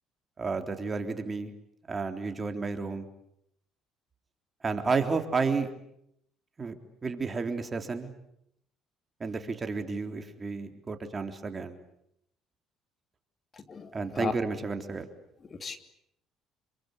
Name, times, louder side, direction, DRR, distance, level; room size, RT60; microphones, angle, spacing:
voice 1, 0.4-1.5 1.9-3.1 4.6-5.7 6.6-6.7 7.0-8.1 9.2-11.8 13.9-15.1, right 4 dB, 30° right, 6 dB, 3.6 m, -31 dB
voice 2, 13.5-14.3 15.4-15.8, left 5 dB, 35° left, 8 dB, 2.9 m, -36 dB
27.5 x 24.5 x 8.4 m, 0.76 s
supercardioid pair, 85°, 0 cm